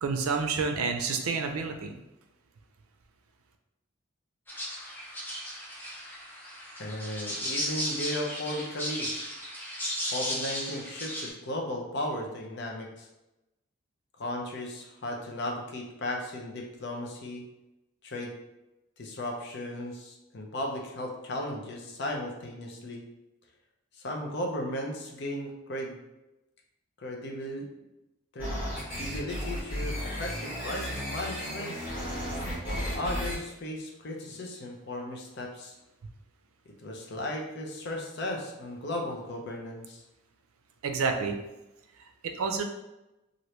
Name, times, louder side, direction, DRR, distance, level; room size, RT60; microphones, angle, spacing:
voice 1, 0.0-1.9 40.8-41.4 42.4-42.6, right 5 dB, 85° right, 5 dB, 0.4 m, -29 dB
sound 1, 4.5-11.3, equal, 10° left, 0.5 m, -35 dB
voice 2, 6.8-9.1 10.1-13.1 14.2-17.4 18.0-18.3 19.0-23.0 24.0-26.0 27.0-27.7 28.3-28.6 29.0-31.7 32.6-35.8 36.7-40.0, left 1 dB, 55° left, 0 dB, 0.6 m, -36 dB
sound 2, 28.4-33.4, equal, 10° right, 1.3 m, -34 dB
2.9 x 2.5 x 3.1 m, 0.96 s
head